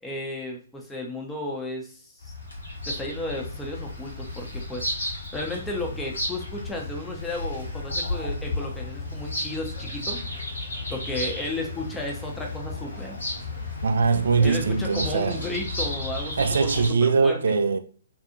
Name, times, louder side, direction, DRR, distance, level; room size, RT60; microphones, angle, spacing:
voice 1, 0.0-2.3 2.9-10.2 10.9-13.2 14.4-17.5, left 1 dB, 5° left, 0.6 m, -34 dB
Bird vocalization bird call bird song, 2.2-16.9, left 2 dB, 70° left, 1.2 m, -33 dB
sound 1, 7.6-15.6, left 3 dB, 50° left, 0.6 m, -48 dB
voice 2, 13.8-15.4 16.4-17.8, right 4 dB, 60° right, 0.3 m, -22 dB
2.7 x 2.4 x 2.5 m
figure-of-eight pair, 125°, 0 cm